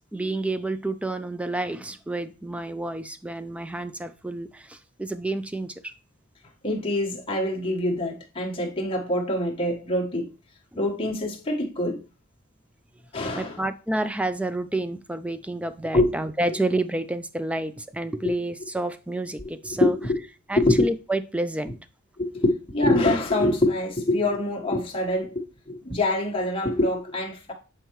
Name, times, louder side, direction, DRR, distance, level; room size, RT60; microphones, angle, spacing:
voice 1, 0.0-5.9 13.4-20.0 20.5-21.7, right 2 dB, 5° right, 0.3 m, -29 dB
voice 2, 6.6-10.3 10.8-12.0 13.1-13.6 15.9-16.1 19.4-19.5 19.8-20.2 20.6-20.9 22.2-27.5, left 1 dB, 25° left, 1.3 m, -24 dB
8.0 x 4.5 x 3.0 m
head